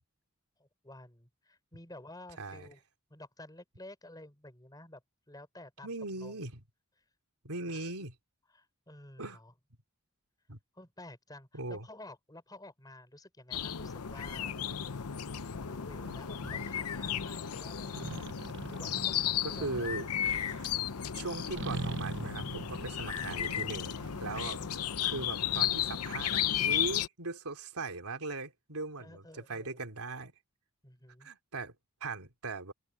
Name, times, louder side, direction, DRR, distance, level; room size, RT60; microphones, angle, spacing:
voice 1, 0.6-2.8 3.1-5.0 5.3-5.9 6.2-6.4 7.0-7.1 7.7-7.8 8.5-9.5 10.7-14.6 15.7-18.3 18.7-20.1 29.0-29.8 30.8-31.3, left 1 dB, 15° left, 4.8 m, -51 dB
voice 2, 2.4-2.7 5.8-6.6 7.4-8.1 9.2-9.4 10.5-10.6 11.5-11.9 19.4-20.1 21.1-23.9 24.2-30.3 31.2-31.7 32.0-32.7, right 3 dB, 85° right, 3.1 m, -39 dB
sound 1, 13.5-27.1, left 9 dB, 85° left, 0.8 m, -34 dB
sound 2, 16.0-16.7 17.9-20.7 21.6-24.8, right 3 dB, 55° right, 0.9 m, -42 dB
open air
head